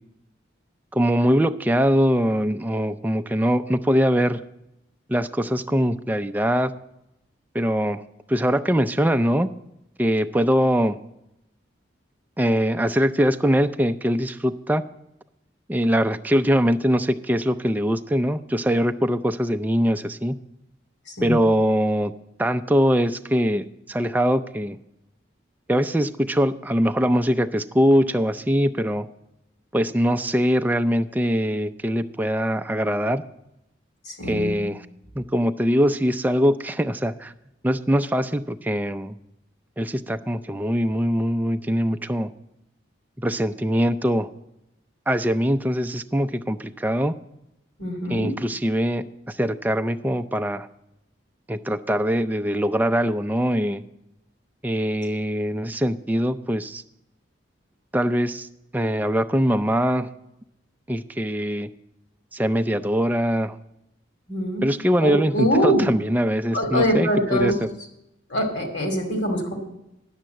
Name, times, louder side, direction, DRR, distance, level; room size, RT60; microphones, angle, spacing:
voice 1, 0.9-4.4 5.1-6.7 7.5-8.0 8.3-9.5 10.0-11.0 12.4-14.8 15.7-20.4 21.2-22.1 22.4-24.8 25.7-29.1 29.7-33.2 34.2-34.9 35.2-37.3 37.6-39.2 39.8-42.3 43.2-44.3 45.1-47.1 48.1-50.7 51.5-53.8 54.6-56.8 57.9-58.5 58.7-60.1 60.9-61.7 62.3-63.6 64.6-67.5, equal, 10° right, 8 dB, 0.3 m, -22 dB
voice 2, 34.0-34.6 47.8-48.3 64.3-64.6 65.0-65.9 66.5-67.5 68.3-69.6, equal, 60° left, 3 dB, 2.4 m, -23 dB
10.0 x 7.3 x 7.7 m, 0.87 s
head